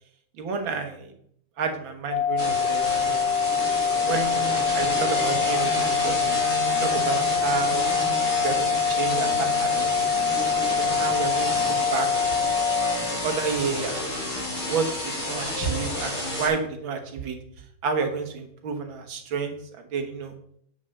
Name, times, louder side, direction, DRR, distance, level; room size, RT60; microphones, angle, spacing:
voice 1, 0.4-1.1 1.6-3.3 4.0-6.4 6.8-7.8 8.4-10.1 10.7-12.1 13.1-14.1 14.6-17.4 17.8-20.4, right 5 dB, 65° right, 6 dB, 2.0 m, -30 dB
sound 1, 2.1-13.0, left 6 dB, 55° left, 1.3 m, -24 dB
sound 2, 2.4-16.5, left 1 dB, 35° left, 5.3 m, -30 dB
8.0 x 7.0 x 6.6 m, 0.70 s
omnidirectional pair, 2.4 m